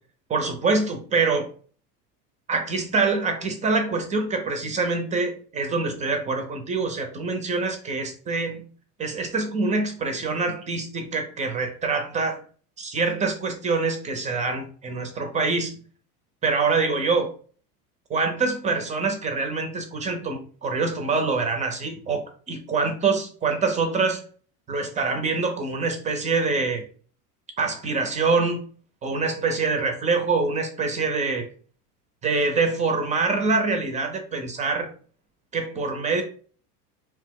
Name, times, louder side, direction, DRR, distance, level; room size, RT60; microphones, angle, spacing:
voice 1, 0.3-1.5 2.5-8.7 9.0-12.4 12.8-15.7 16.4-17.3 18.1-24.2 24.7-26.8 27.6-28.7 29.0-31.5 32.2-34.9 35.5-36.2, right 4 dB, 15° right, 5 dB, 0.4 m, -25 dB
2.8 x 2.1 x 3.5 m, 0.43 s
hypercardioid pair, 95°, 47 cm